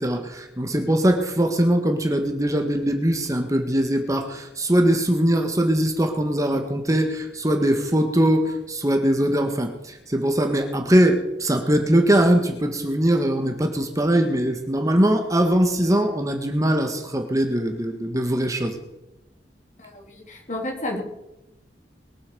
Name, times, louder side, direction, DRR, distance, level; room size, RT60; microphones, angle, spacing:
voice 1, 0.0-18.8, right 1 dB, 20° right, 5 dB, 1.7 m, -21 dB
voice 2, 19.8-21.0, left 1 dB, 45° left, 1 dB, 3.6 m, -31 dB
22.0 x 8.5 x 6.9 m, 0.93 s
head